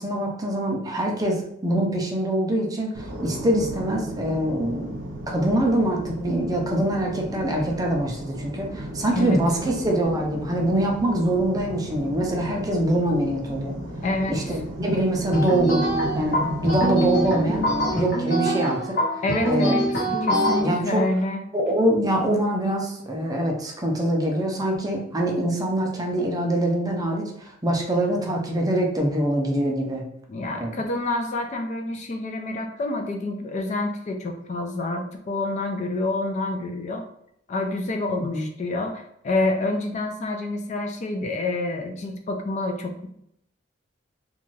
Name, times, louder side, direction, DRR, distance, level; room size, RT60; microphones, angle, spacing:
voice 1, 0.0-13.7 14.3-15.8 16.1-17.7 17.9-19.0 19.5-19.7 20.6-21.1 21.5-30.1 30.6-30.7 38.3-38.5, right 1 dB, 20° right, 0 dB, 0.5 m, -24 dB
sound 1, 2.9-17.9, right 1 dB, 80° right, 0.8 m, -35 dB
voice 2, 14.0-14.4 19.2-21.4 30.3-37.0 37.5-43.1, left 2 dB, 40° left, 4 dB, 0.3 m, -27 dB
sound 2, 15.3-20.6, equal, 60° left, 1.0 m, -24 dB
2.5 x 2.2 x 3.1 m, 0.74 s
head